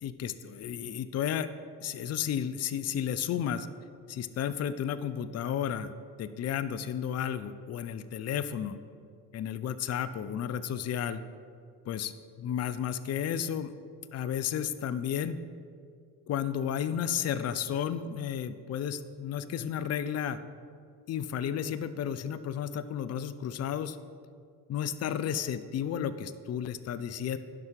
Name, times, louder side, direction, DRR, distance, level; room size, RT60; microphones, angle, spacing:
voice 1, 0.0-1.5 1.8-3.7 4.1-5.9 6.2-8.8 9.3-11.2 11.9-12.1 12.4-13.7 14.1-15.4 16.3-20.4 21.1-24.0 24.7-27.4, left 9 dB, 35° left, 13 dB, 0.5 m, -32 dB
10.5 x 5.9 x 4.6 m, 2.3 s
hypercardioid pair, 55°, 46 cm